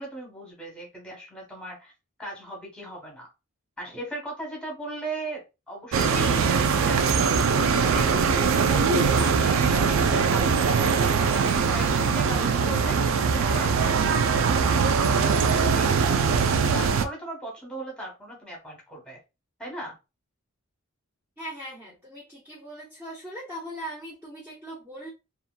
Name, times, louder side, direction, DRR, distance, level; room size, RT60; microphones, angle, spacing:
voice 1, 0.0-1.9 2.2-3.3 3.8-7.4 7.8-13.0 13.4-14.0 14.9-19.2 19.6-20.0, right 1 dB, 5° left, -2 dB, 1.0 m, -38 dB
sound 1, 5.9-17.0, right 5 dB, 60° right, 0.3 m, -22 dB
voice 2, 21.4-25.1, right 1 dB, 10° right, -6 dB, 0.6 m, -39 dB
2.8 x 2.4 x 2.2 m, 0.27 s
head